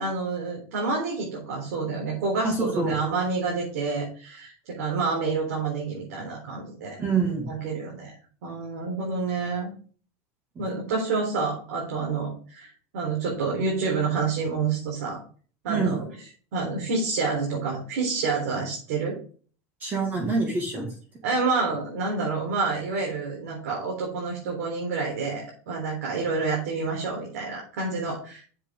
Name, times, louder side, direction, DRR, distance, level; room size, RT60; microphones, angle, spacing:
voice 1, 0.0-7.0 7.5-8.2 8.4-9.7 10.6-15.2 15.6-16.0 16.5-19.2 19.9-20.0 21.2-28.5, right 4 dB, 85° right, -3 dB, 4.0 m, -28 dB
voice 2, 2.4-2.9 7.0-7.5 15.7-16.0 19.8-20.9, right 4 dB, 25° right, 1 dB, 2.2 m, -25 dB
8.6 x 7.5 x 3.8 m, 0.42 s
supercardioid pair, 155°, 8 cm